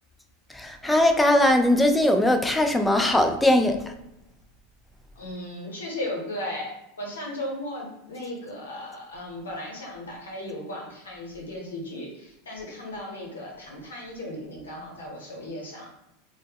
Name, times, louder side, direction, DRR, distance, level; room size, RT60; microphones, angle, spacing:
voice 1, 0.5-3.8, left 1 dB, 10° left, 5 dB, 0.3 m, -20 dB
voice 2, 5.2-6.7 7.0-15.9, left 1 dB, 85° left, -2 dB, 0.8 m, -36 dB
2.0 x 2.0 x 3.4 m, 0.85 s
hypercardioid pair, 95°, 0 cm